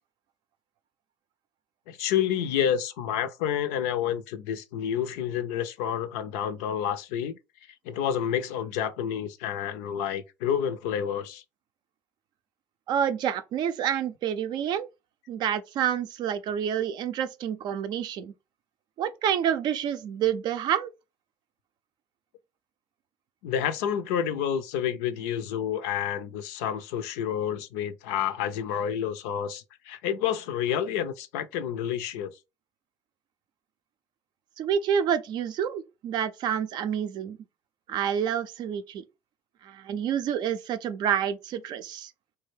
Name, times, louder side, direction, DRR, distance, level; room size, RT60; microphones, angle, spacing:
voice 1, 1.9-7.4 7.9-11.4 23.4-32.4, left 9 dB, 75° left, 0.4 m, -29 dB
voice 2, 12.9-14.9 15.3-18.3 19.0-20.9 34.6-37.4 37.9-39.0 39.6-42.1, right 9 dB, 55° right, 0.4 m, -28 dB
3.3 x 2.4 x 3.1 m
hypercardioid pair, 65°, 9 cm